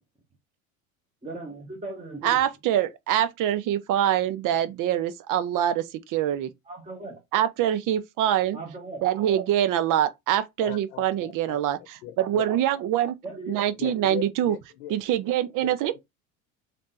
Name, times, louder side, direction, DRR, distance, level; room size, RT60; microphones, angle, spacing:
voice 1, 1.2-2.4 6.6-7.2 8.5-9.0 13.2-13.6, right 2 dB, 15° right, 1.3 m, -38 dB
voice 2, 2.2-6.5 7.3-8.6 9.0-11.8 12.2-13.2 13.5-14.5 14.9-16.0, right 11 dB, 50° right, 0.8 m, -24 dB
voice 3, 10.6-12.4 13.7-15.0 15.6-16.0, left 13 dB, 70° left, 0.9 m, -39 dB
3.4 x 2.7 x 4.1 m
supercardioid pair, 95°, 42 cm